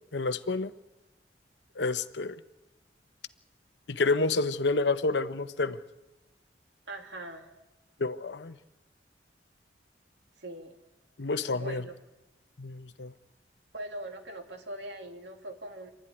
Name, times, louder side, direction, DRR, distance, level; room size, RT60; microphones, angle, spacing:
voice 1, 0.1-0.7 1.8-2.4 3.9-5.8 8.0-8.6 11.2-11.8 12.6-13.1, left 3 dB, 75° left, 12 dB, 0.9 m, -29 dB
voice 2, 6.9-7.5 10.4-10.8 11.5-11.9 13.7-15.9, right 1 dB, 75° right, 4 dB, 2.5 m, -41 dB
27.0 x 12.5 x 10.0 m, 1.1 s
head